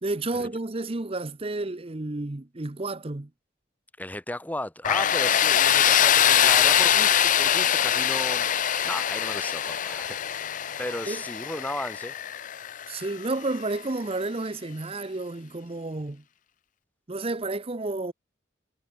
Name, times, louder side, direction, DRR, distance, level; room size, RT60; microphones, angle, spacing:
voice 1, 0.0-3.3 11.1-11.2 12.9-16.2 17.1-18.1, right 2 dB, 30° right, 0.8 m, -31 dB
voice 2, 4.0-8.5 8.8-10.5 10.8-12.1, left 1 dB, 10° left, 1.3 m, -35 dB
Tools, 4.8-13.6, left 10 dB, 40° left, 0.6 m, -23 dB
head